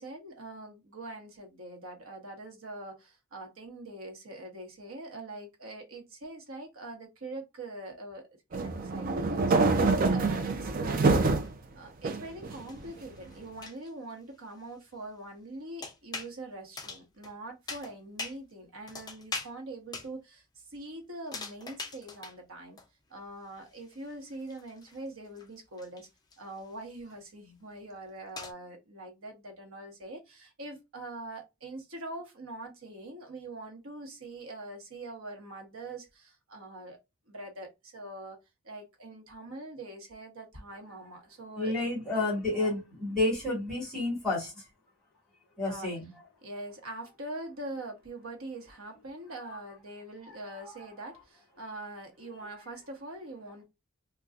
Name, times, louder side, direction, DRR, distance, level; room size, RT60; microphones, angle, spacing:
voice 1, 0.0-11.2 11.7-22.8 23.1-26.1 26.4-37.0 37.3-38.4 38.6-41.8 42.1-42.8 45.7-45.9 46.4-53.6, right 2 dB, 75° right, 1.0 m, -43 dB
sound 1, 8.5-11.5 12.0-12.9, right 3 dB, 40° right, 0.4 m, -26 dB
sound 2, 11.4-11.5 12.3-13.9 15.8-16.3 16.8-17.3 17.7-18.4 18.9-19.5 19.9-20.1 21.3-22.4 22.8-22.9 23.2-23.3 23.7-26.7 27.1-27.2 27.9-28.0 28.4-28.5, left 3 dB, 20° left, 0.4 m, -42 dB
voice 2, 41.6-44.6 45.6-46.0 50.6-50.7, left 2 dB, ahead, 1.9 m, -30 dB
3.8 x 2.3 x 2.3 m
head